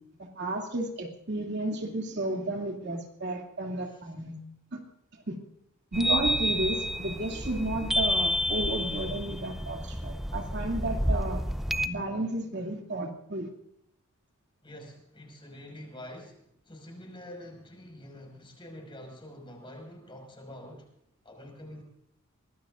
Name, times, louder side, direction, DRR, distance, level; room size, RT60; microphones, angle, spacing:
voice 1, 0.2-4.4 4.7-4.8 5.3-5.4 5.9-11.4 11.9-13.5, right 1 dB, 55° right, 1 dB, 2.7 m, -32 dB
sound 1, 5.9-11.9, equal, ahead, 0.6 m, -29 dB
voice 2, 14.6-20.9 21.2-21.8, left 1 dB, 25° left, 2 dB, 5.7 m, -46 dB
24.0 x 19.0 x 2.6 m, 0.73 s
head